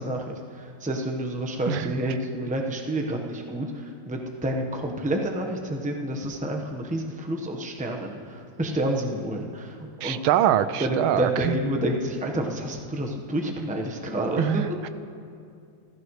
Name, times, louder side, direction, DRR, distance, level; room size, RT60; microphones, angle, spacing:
voice 1, 0.0-10.2 10.8-14.6, right 1 dB, 5° right, 1 dB, 0.7 m, -29 dB
voice 2, 10.0-11.6 14.4-14.9, right 11 dB, 90° right, 13 dB, 1.4 m, -24 dB
27.5 x 15.0 x 3.2 m, 2.4 s
omnidirectional pair, 2.2 m